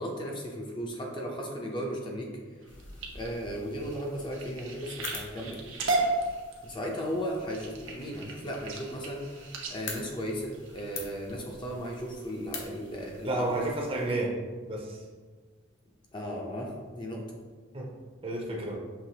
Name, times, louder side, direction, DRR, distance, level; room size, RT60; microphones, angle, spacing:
voice 1, 0.0-2.3 3.1-5.6 6.6-13.5 16.1-17.4, equal, 25° left, -1 dB, 0.5 m, -36 dB
sound 1, 2.6-11.3 11.9-12.2 12.7-13.0 13.5-13.6 13.9-14.0, right 2 dB, 75° right, 0.7 m, -35 dB
sound 2, 2.7-14.1, left 4 dB, 65° left, 0.7 m, -47 dB
voice 2, 13.2-14.3 14.7-15.0 17.7-17.9 18.2-18.8, right 2 dB, 30° right, -1 dB, 0.6 m, -31 dB
5.8 x 2.9 x 2.8 m, 1.5 s
head